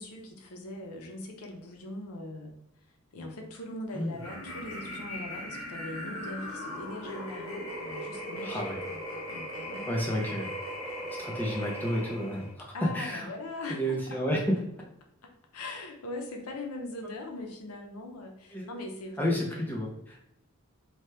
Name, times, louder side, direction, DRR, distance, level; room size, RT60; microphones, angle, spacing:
voice 1, 0.0-2.6 3.1-9.0 9.3-10.4 12.7-14.2 15.2-19.7, left 2 dB, 85° left, 2 dB, 0.6 m, -41 dB
sound 1, 4.2-12.5, equal, 60° left, 0.9 m, -38 dB
voice 2, 8.4-8.8 9.9-10.6 11.2-13.3 13.7-14.6 18.5-18.7 19.2-20.2, equal, 10° left, -2 dB, 0.5 m, -31 dB
2.9 x 2.2 x 3.1 m, 0.80 s
head